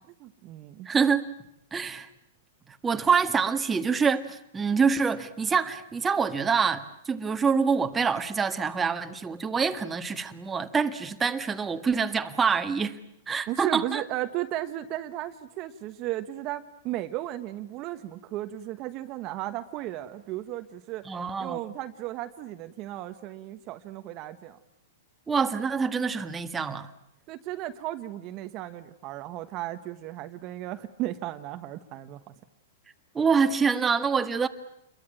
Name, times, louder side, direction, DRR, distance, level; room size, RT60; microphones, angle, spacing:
voice 1, 0.2-0.9 13.5-21.1 21.4-24.6 27.3-32.3, right 14 dB, 40° right, 1.3 m, -35 dB
voice 2, 0.8-1.2 1.7-2.1 2.8-13.0 13.3-14.0 21.0-21.6 25.3-26.9 33.1-34.5, right 5 dB, 15° right, 1.7 m, -26 dB
29.0 x 23.0 x 9.0 m
hypercardioid pair, 135°, 0 cm